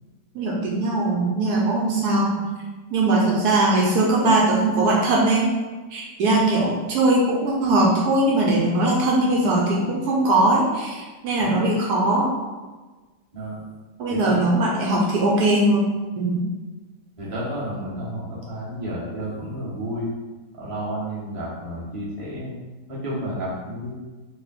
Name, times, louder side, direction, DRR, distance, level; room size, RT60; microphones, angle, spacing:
voice 1, 0.3-2.4 2.9-5.5 5.9-12.3 14.0-15.9 16.2-16.4, right 2 dB, 75° right, -3 dB, 1.1 m, -20 dB
voice 2, 17.2-20.1 20.5-22.5 22.9-23.9, equal, 20° right, -8 dB, 1.0 m, -31 dB
4.0 x 2.1 x 4.2 m, 1.3 s
omnidirectional pair, 1.8 m